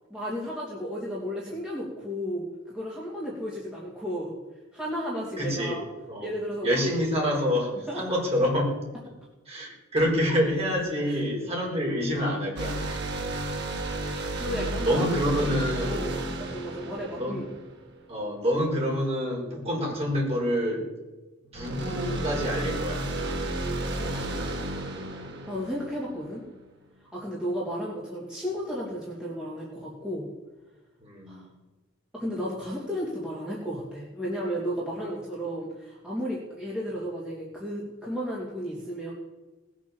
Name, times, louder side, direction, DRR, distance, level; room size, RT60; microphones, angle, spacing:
voice 1, 0.1-4.3 4.7-5.8 6.2-6.8 7.3-7.4 7.9-8.2 11.0-11.2 14.4-15.1 15.4-15.5 15.8-16.1 16.4-17.4 24.0-24.5 25.5-26.4 27.1-30.3 31.3-31.5 32.1-39.1, equal, 5° right, -6 dB, 3.0 m, -33 dB
voice 2, 5.4-5.8 6.1-6.3 6.6-8.7 9.5-12.8 14.8-16.0 17.2-17.4 18.1-20.8 21.5-23.1 31.0-31.4, equal, 30° right, -2 dB, 5.0 m, -27 dB
sound 1, 12.6-18.0 21.5-26.3, right 1 dB, 60° right, 2.1 m, -32 dB
19.0 x 7.4 x 7.3 m, 1.1 s
head